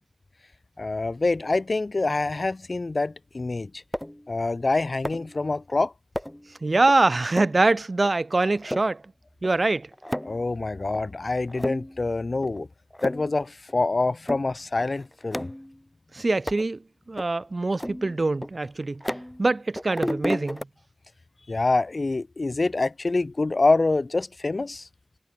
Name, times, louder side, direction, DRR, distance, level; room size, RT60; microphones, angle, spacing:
voice 1, 0.8-3.8 4.3-5.9 10.2-12.7 13.0-15.5 21.5-24.9, left 3 dB, 60° left, 4.8 m, -26 dB
sound 1, 3.9-4.3 5.0-5.4 6.2-6.5 6.9-7.0 7.3-7.6 8.0-8.1 8.5-8.9 9.4-9.5 9.8-10.4 10.9-11.0 11.5-12.0 12.4-12.6 12.9-13.3 13.7-13.8 14.3-14.5 14.8-15.8 16.5-16.7 17.2-17.3 17.8-19.5 19.8-20.6, equal, 10° left, 2.7 m, -32 dB
voice 2, 6.6-9.0 9.4-9.9 16.1-16.8 17.1-19.0 19.4-20.7, right 2 dB, 55° right, 4.7 m, -23 dB
wide cardioid pair, 50°, 0 cm